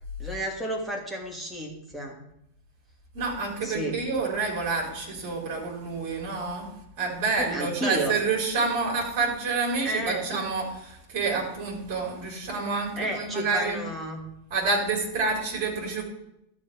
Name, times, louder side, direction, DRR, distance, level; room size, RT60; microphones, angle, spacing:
voice 1, 0.2-2.2 3.6-4.0 7.4-8.1 9.8-10.4 13.0-14.2, right 1 dB, ahead, -2 dB, 2.5 m, -32 dB
voice 2, 3.1-6.7 7.0-13.8 14.5-16.0, right 4 dB, 45° right, -1 dB, 4.2 m, -28 dB
12.5 x 4.9 x 7.8 m, 0.82 s
figure-of-eight pair, 90°, 0 cm